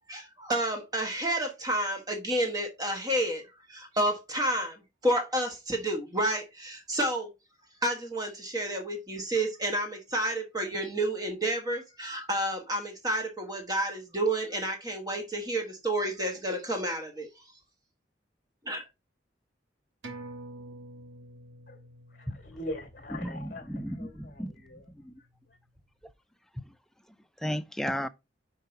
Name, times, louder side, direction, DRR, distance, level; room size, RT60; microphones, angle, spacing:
voice 1, 0.1-3.4 3.7-7.3 7.8-17.3 18.6-18.8, right 1 dB, 20° right, 1.2 m, -30 dB
sound 1, 20.0-25.0 25.3-25.4, right 2 dB, 75° right, 1.5 m, -48 dB
voice 2, 22.1-24.9 25.5-25.6, left 1 dB, 45° left, 1.4 m, -42 dB
voice 3, 23.2-24.5 25.0-25.1 27.4-28.1, equal, ahead, 0.3 m, -33 dB
5.4 x 4.7 x 4.3 m
head